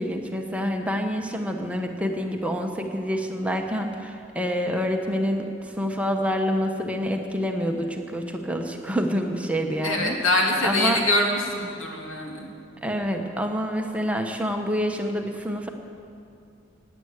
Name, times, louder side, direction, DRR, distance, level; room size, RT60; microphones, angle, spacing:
voice 1, 0.0-10.2 10.6-11.0 12.8-15.7, equal, 5° right, 3 dB, 1.0 m, -27 dB
voice 2, 9.8-12.5, left 1 dB, 80° left, 0 dB, 2.7 m, -24 dB
18.0 x 9.8 x 8.2 m, 2.5 s
head